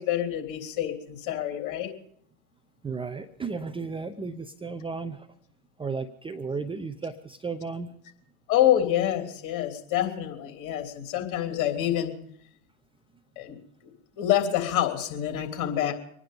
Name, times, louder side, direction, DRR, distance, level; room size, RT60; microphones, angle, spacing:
voice 1, 0.0-1.9 8.5-12.1 13.4-13.6 14.2-15.9, left 11 dB, 50° left, 4 dB, 3.3 m, -26 dB
voice 2, 2.8-5.3 5.8-7.9, right 4 dB, 15° right, 9 dB, 0.8 m, -34 dB
25.5 x 9.9 x 5.2 m, 0.68 s
hypercardioid pair, 105°, 41 cm